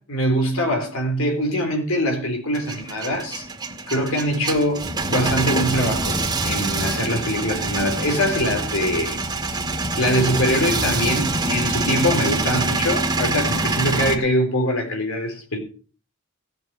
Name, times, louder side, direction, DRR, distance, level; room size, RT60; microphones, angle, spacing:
voice 1, 0.0-3.5 3.9-6.2 6.4-9.2 10.0-15.6, equal, 75° left, 4.1 m, -23 dB
Male speech man speaking / Vehicle / Engine starting, 2.5-14.2, right 2 dB, 20° right, 1.9 m, -25 dB
17.0 x 7.4 x 6.0 m
head